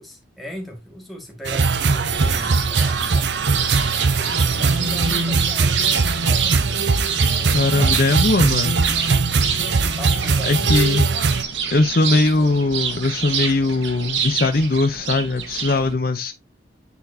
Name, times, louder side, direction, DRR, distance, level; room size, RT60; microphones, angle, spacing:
voice 1, 0.0-3.4 4.1-6.9 7.2-8.1 9.9-11.2 12.0-12.6, equal, ahead, 2.2 m, -38 dB
sound 1, 1.4-11.4, right 4 dB, 65° right, 0.7 m, -20 dB
sound 2, 2.1-15.9, right 7 dB, 80° right, 1.5 m, -27 dB
voice 2, 7.5-8.8 10.4-11.1 11.7-16.3, left 2 dB, 55° left, 0.7 m, -20 dB
9.3 x 4.1 x 2.7 m
head